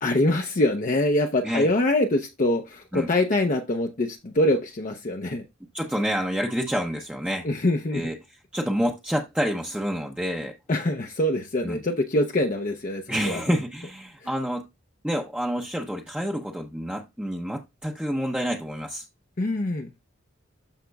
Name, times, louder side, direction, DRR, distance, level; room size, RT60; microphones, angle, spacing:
voice 1, 0.0-5.5 7.4-8.1 10.7-13.4 14.2-14.3 19.4-19.9, left 1 dB, 40° left, 0.7 m, -24 dB
voice 2, 5.7-7.5 7.9-8.1 8.5-10.6 11.6-11.8 13.1-14.7 15.0-19.1, equal, 5° right, 0.8 m, -28 dB
13.0 x 5.0 x 2.3 m
head